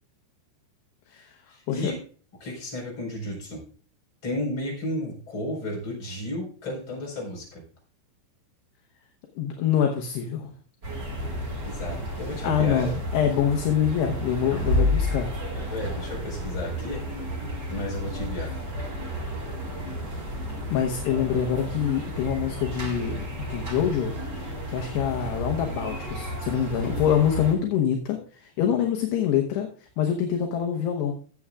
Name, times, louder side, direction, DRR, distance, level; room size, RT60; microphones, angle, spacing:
voice 1, 1.5-2.0 2.4-3.6 4.2-7.6 11.6-12.9 14.4-14.9 15.6-17.0 17.7-18.5, left 1 dB, 30° left, -2 dB, 5.0 m, -33 dB
voice 2, 9.4-10.5 12.4-15.3 20.7-24.1 24.4-29.7 30.0-31.1, left 8 dB, 75° left, 2 dB, 2.9 m, -25 dB
sound 1, 10.8-27.5, left 1 dB, 45° right, 1.3 m, -31 dB
19.5 x 7.8 x 2.4 m, 0.42 s
omnidirectional pair, 5.3 m